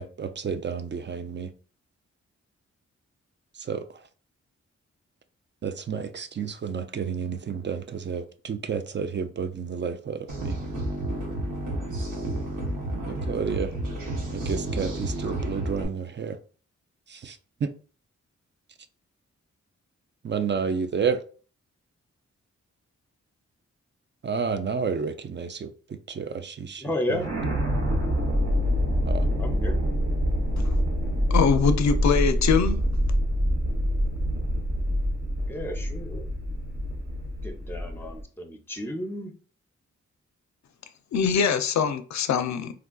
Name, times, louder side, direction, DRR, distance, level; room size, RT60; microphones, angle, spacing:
voice 1, 0.0-1.5 3.6-4.0 5.6-10.6 13.1-13.7 14.3-16.4 17.1-17.7 20.2-21.2 24.2-25.7 26.1-26.8 27.1-27.2 29.1-29.3, right 6 dB, 35° right, 0.4 m, -30 dB
sound 1, 10.3-15.9, right 1 dB, 85° right, 0.8 m, -31 dB
voice 2, 26.8-27.3 29.4-29.8 35.5-36.3 37.4-39.3, left 1 dB, 5° left, 0.7 m, -32 dB
sound 2, 27.1-38.2, equal, 55° right, 0.9 m, -26 dB
voice 3, 31.3-32.8 41.1-42.7, left 6 dB, 65° left, 0.5 m, -23 dB
3.6 x 2.3 x 2.3 m
cardioid pair, 45°, 30 cm